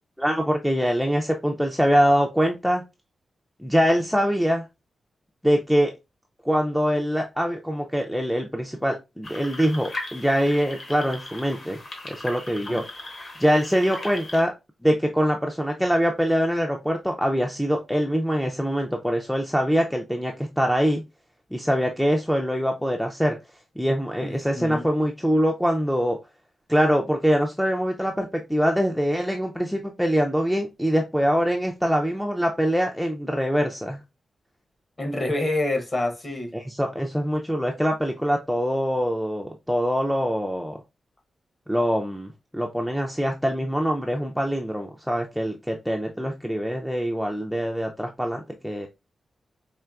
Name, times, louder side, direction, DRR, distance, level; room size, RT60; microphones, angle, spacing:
voice 1, 0.2-2.8 3.6-4.7 5.4-5.9 6.4-11.8 12.1-12.8 13.4-14.5 14.8-21.0 21.5-23.4 23.8-26.2 26.7-34.0 36.5-40.8 41.7-48.9, equal, ahead, 0.4 m, -24 dB
sound 1, 9.2-14.4, left 2 dB, 45° left, 1.1 m, -38 dB
voice 2, 24.2-24.9 35.0-36.5, left 2 dB, 25° left, 0.8 m, -27 dB
4.4 x 2.9 x 2.4 m
wide cardioid pair, 165°, 0 cm